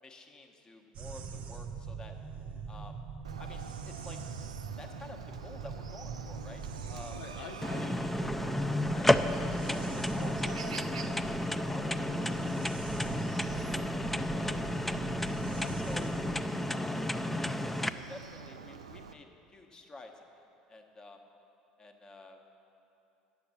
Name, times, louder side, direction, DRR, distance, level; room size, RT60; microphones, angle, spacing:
voice 1, 0.0-2.1 2.7-3.0 3.4-4.2 4.8-6.6 6.9-7.5 7.8-8.1 8.9-9.1 9.7-11.3 11.7-12.7 13.0-15.1 15.8-16.1 16.7-21.2 21.8-22.5, left 2 dB, 25° left, 4 dB, 1.0 m, -50 dB
sound 1, 0.9-16.4, right 6 dB, 45° right, 0.7 m, -43 dB
Chicken rooster, 3.2-19.1, right 5 dB, 85° right, 0.3 m, -47 dB
voice 2, 7.1-8.6 15.5-16.8, left 4 dB, 65° left, 2 dB, 0.7 m, -49 dB
sound 2, 7.6-17.9, left 1 dB, 5° left, 0.3 m, -32 dB
9.4 x 7.0 x 7.1 m, 2.8 s
figure-of-eight pair, 70°, 3 cm